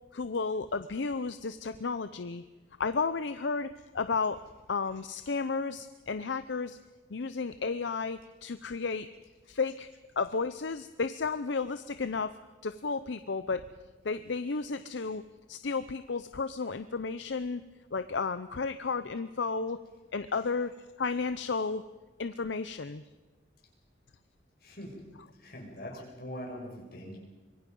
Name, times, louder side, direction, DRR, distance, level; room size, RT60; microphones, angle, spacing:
voice 1, 0.1-2.4 2.8-4.4 4.7-6.8 7.1-9.1 9.5-9.9 10.2-12.4 12.6-13.6 14.0-15.2 15.5-17.6 17.9-19.8 20.1-21.8 22.2-23.0, left 4 dB, 75° left, 11 dB, 0.6 m, -33 dB
voice 2, 24.6-24.9 25.4-27.2, equal, 55° left, 0 dB, 6.0 m, -42 dB
24.5 x 23.0 x 5.4 m, 1.3 s
head